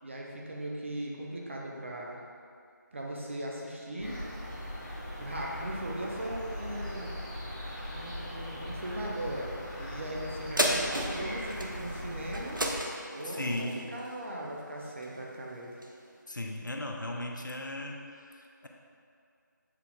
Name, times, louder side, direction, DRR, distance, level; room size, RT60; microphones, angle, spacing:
voice 1, 0.0-2.2 2.9-4.2 5.2-7.1 7.9-12.7 13.1-15.7, right 1 dB, 40° right, -2 dB, 0.8 m, -38 dB
sound 1, 4.0-12.8, equal, 5° left, 0.8 m, -40 dB
sound 2, 10.6-15.3 15.8-15.9, right 1 dB, 90° right, 0.7 m, -33 dB
voice 2, 13.2-13.8 16.3-18.7, left 1 dB, 75° left, 1 dB, 0.7 m, -37 dB
7.5 x 3.3 x 3.8 m, 2.4 s
figure-of-eight pair, 165°, 11 cm